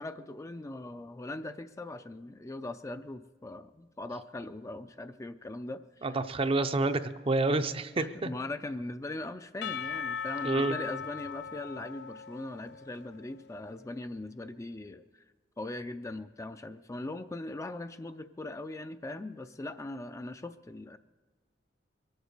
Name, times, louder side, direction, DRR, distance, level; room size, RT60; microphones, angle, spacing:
voice 1, 0.0-6.2 8.0-15.2 15.6-21.0, left 2 dB, 15° left, 9 dB, 0.4 m, -40 dB
voice 2, 6.0-8.3 10.4-10.7, right 2 dB, 30° right, 10 dB, 0.5 m, -28 dB
Percussion / Church bell, 9.6-13.6, left 7 dB, 65° left, 0.5 m, -39 dB
23.0 x 8.0 x 6.6 m, 1.3 s
head